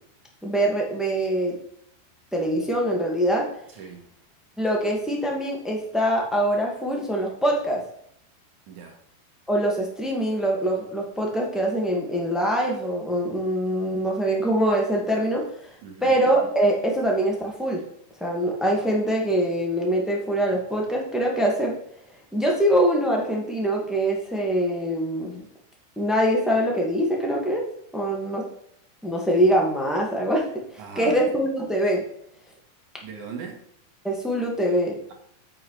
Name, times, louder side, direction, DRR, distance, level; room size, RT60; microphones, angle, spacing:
voice 1, 0.4-1.5 2.3-3.4 4.6-7.8 9.5-15.4 16.0-17.8 18.2-21.7 22.3-25.4 25.9-27.6 27.9-28.4 29.0-30.4 30.9-32.0 34.0-35.0, right 1 dB, ahead, -2 dB, 0.8 m, -23 dB
voice 2, 8.7-9.0 15.8-16.2 30.8-31.2 33.0-33.6, right 6 dB, 60° right, 2 dB, 3.1 m, -39 dB
8.6 x 7.0 x 4.9 m, 0.68 s
omnidirectional pair, 4.2 m